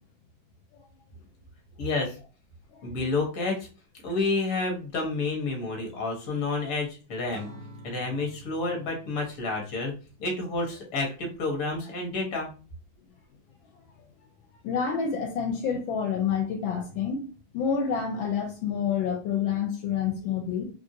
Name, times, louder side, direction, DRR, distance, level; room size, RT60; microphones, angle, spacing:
voice 1, 1.8-2.2 2.8-3.7 4.0-7.5 7.8-9.9 10.2-12.5, left 3 dB, 50° left, 1.1 m, -29 dB
Acoustic guitar / Strum, 7.3-10.6, equal, 70° right, 0.9 m, -48 dB
voice 2, 14.6-17.3 17.5-20.7, left 7 dB, 80° left, 1.3 m, -28 dB
3.1 x 2.6 x 2.6 m
omnidirectional pair, 2.2 m